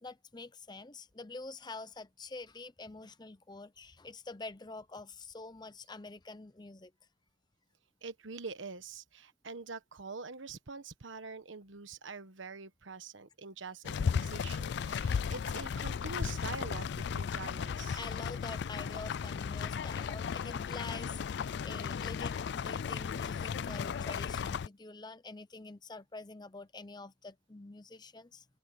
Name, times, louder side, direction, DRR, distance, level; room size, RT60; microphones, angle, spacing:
voice 1, 0.0-6.9 17.9-28.5, left 3 dB, 20° left, 0.8 m, -47 dB
voice 2, 8.0-18.0, right 4 dB, 75° right, 1.2 m, -45 dB
sound 1, 13.8-24.7, left 6 dB, 60° left, 0.3 m, -35 dB
open air
head